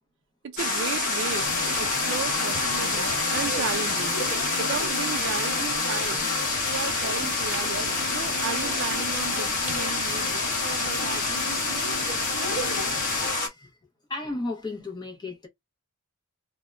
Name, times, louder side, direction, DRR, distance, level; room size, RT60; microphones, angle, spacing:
voice 1, 0.4-4.2 4.6-6.3 6.6-12.0, right 6 dB, 60° right, 0.4 m, -35 dB
sound 1, 0.6-13.5, left 2 dB, 40° left, 1.0 m, -27 dB
sound 2, 1.3-13.3, left 6 dB, 60° left, 0.6 m, -34 dB
sound 3, 1.5-1.8 2.3-3.5 3.9-4.4 4.9-5.0 6.4-8.3 8.6-10.4 11.0-11.4 11.6-11.7, equal, 10° right, 1.3 m, -44 dB
voice 2, 14.1-15.5, left 2 dB, 20° left, 0.7 m, -34 dB
3.6 x 2.1 x 2.2 m
head